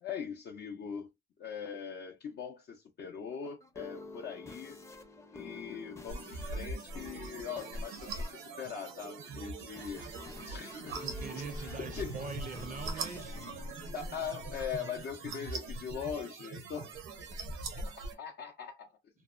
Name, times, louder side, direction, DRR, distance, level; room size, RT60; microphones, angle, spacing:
voice 1, 0.0-1.1 1.4-4.8 5.3-10.0 10.4-10.9 11.9-12.2 13.9-16.9 17.7-18.9, left 7 dB, 55° left, 0.5 m, -41 dB
sound 1, 3.3-15.8, left 3 dB, 15° left, 0.5 m, -50 dB
sound 2, 6.1-18.1, right 3 dB, 90° right, 0.6 m, -42 dB
voice 2, 10.5-13.9 17.3-17.7, right 5 dB, 40° right, 0.4 m, -44 dB
sound 3, 11.4-13.6, left 2 dB, 90° left, 0.8 m, -51 dB
2.7 x 2.1 x 2.4 m
cardioid pair, 90°, 20 cm